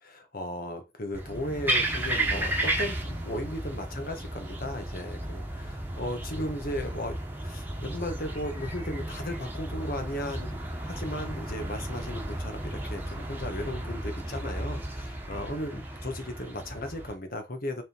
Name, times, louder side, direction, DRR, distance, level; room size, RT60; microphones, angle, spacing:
voice 1, 0.0-7.1 7.4-17.8, left 1 dB, 55° left, 1.6 m, -36 dB
sound 1, 1.1-17.1, right 1 dB, 10° right, 1.4 m, -34 dB
6.6 x 3.8 x 4.6 m
head